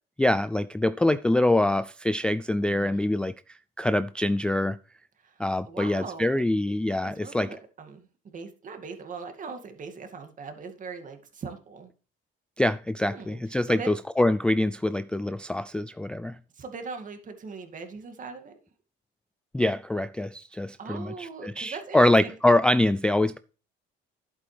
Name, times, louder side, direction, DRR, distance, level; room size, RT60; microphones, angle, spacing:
voice 1, 0.2-4.8 5.4-7.6 12.6-16.4 19.5-23.4, left 1 dB, 5° left, 0.3 m, -24 dB
voice 2, 2.6-3.2 5.2-6.3 7.0-11.9 13.0-13.4 13.7-13.9 16.5-18.5 20.8-22.3, right 4 dB, 40° right, 2.2 m, -40 dB
11.0 x 8.4 x 3.3 m
cardioid pair, 100°, 20 cm